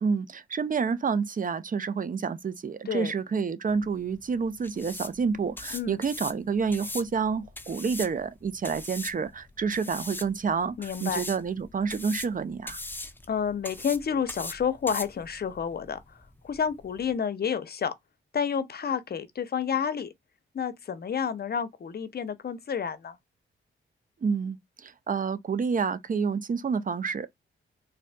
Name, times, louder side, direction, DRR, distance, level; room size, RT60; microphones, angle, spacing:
voice 1, 0.0-12.8 24.2-27.3, right 5 dB, 40° right, 0.5 m, -29 dB
sound 1, 3.7-17.2, left 2 dB, 10° left, 0.5 m, -41 dB
voice 2, 10.8-11.2 13.3-16.0 16.4-17.9 18.3-20.1 20.5-23.2, left 7 dB, 50° left, 0.6 m, -30 dB
4.1 x 2.7 x 2.2 m
cardioid pair, 65°, 21 cm